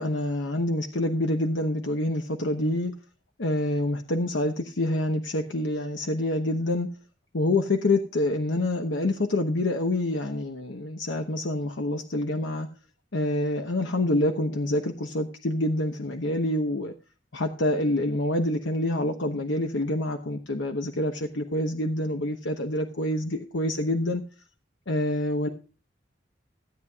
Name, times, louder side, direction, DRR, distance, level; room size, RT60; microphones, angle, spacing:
voice 1, 0.0-2.9 3.4-6.9 7.3-12.7 13.1-16.9 17.3-24.2 24.9-25.5, left 1 dB, 80° left, 1.1 m, -27 dB
16.5 x 9.5 x 2.3 m
head